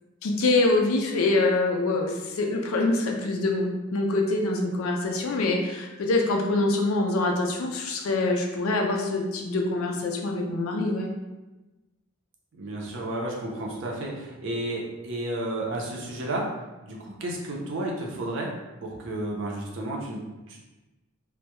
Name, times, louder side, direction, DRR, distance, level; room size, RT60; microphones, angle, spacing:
voice 1, 0.2-11.1, left 2 dB, 80° left, 1 dB, 0.4 m, -25 dB
voice 2, 12.6-16.4 16.8-18.5 18.8-20.6, right 1 dB, 60° right, -2 dB, 0.5 m, -32 dB
2.2 x 2.1 x 2.8 m, 1.1 s
head